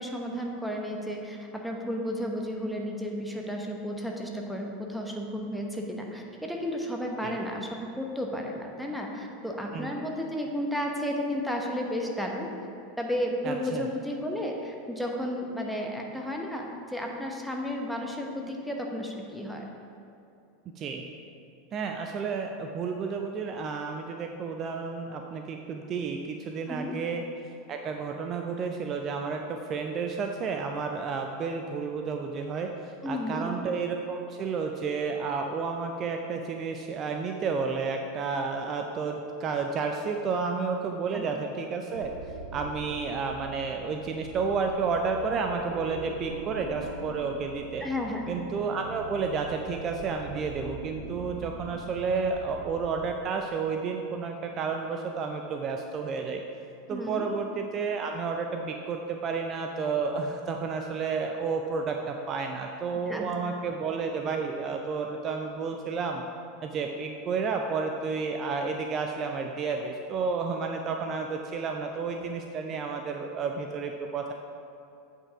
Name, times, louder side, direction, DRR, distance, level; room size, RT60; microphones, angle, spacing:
voice 1, 0.0-12.5 13.0-19.6 26.7-26.9 33.0-33.5 41.1-41.2 47.8-48.2 56.9-57.3 63.1-63.3, equal, ahead, 0 dB, 1.1 m, -33 dB
voice 2, 13.4-13.8 20.8-21.1 21.7-27.2 27.7-42.1 42.5-47.9 48.3-56.4 56.9-66.3 66.6-74.3, right 5 dB, 35° right, 4 dB, 0.5 m, -31 dB
sound 1, 41.9-53.0, right 3 dB, 85° right, 0.6 m, -42 dB
8.4 x 5.5 x 4.8 m, 2.7 s
figure-of-eight pair, 85°, 0 cm